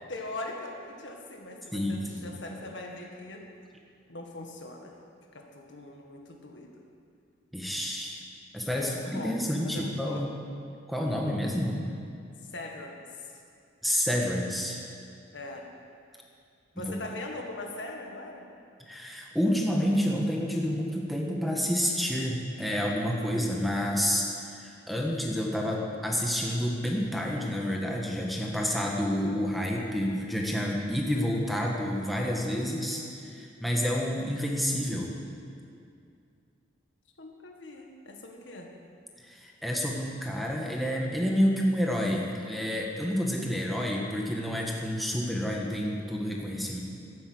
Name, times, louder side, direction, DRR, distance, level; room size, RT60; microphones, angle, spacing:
voice 1, 0.1-3.4 4.1-5.0 5.3-6.8 8.7-9.3 9.6-10.2 12.5-13.3 15.3-15.7 16.8-18.4 37.2-38.7, left 2 dB, 70° left, 1 dB, 1.8 m, -41 dB
voice 2, 1.7-2.4 7.5-8.2 8.5-10.3 10.9-11.8 13.8-14.8 18.9-35.2 39.2-46.8, equal, ahead, -2 dB, 1.5 m, -29 dB
13.0 x 10.0 x 7.9 m, 2.4 s
head